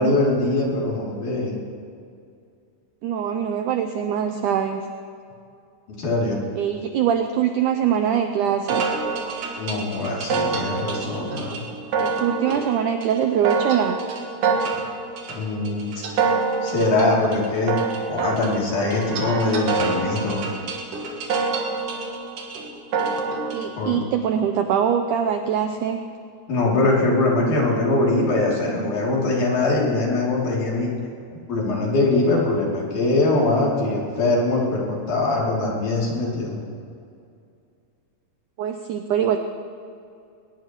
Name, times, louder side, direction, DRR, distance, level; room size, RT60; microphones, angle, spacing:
voice 1, 0.0-1.6 5.9-6.4 9.6-11.6 15.3-16.1 16.6-17.7 18.1-20.5 23.8-24.0 26.5-30.9 31.5-36.6, left 2 dB, 55° left, -3 dB, 4.1 m, -22 dB
voice 2, 3.0-4.8 6.6-8.9 12.0-14.0 23.5-26.0 38.6-39.4, right 8 dB, 80° right, 6 dB, 1.8 m, -23 dB
sound 1, 8.7-23.7, right 4 dB, 65° right, 2.9 m, -27 dB
20.5 x 20.0 x 3.0 m, 2.4 s
omnidirectional pair, 4.4 m